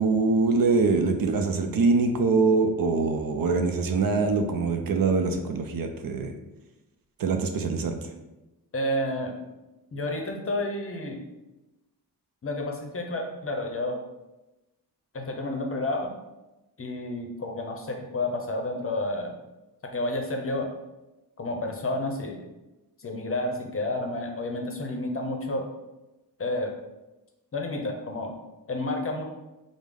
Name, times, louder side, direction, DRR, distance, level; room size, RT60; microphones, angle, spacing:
voice 1, 0.0-6.3 7.2-8.0, right 4 dB, 60° right, 5 dB, 0.5 m, -23 dB
voice 2, 8.7-9.4 9.9-11.2 12.4-14.0 15.1-16.1 16.8-19.3 19.9-20.7 21.4-22.4 23.0-25.7 26.4-26.7 27.5-28.3 28.7-29.2, left 1 dB, 35° left, 2 dB, 0.7 m, -30 dB
4.9 x 2.1 x 3.6 m, 1.0 s
wide cardioid pair, 115°, 40 cm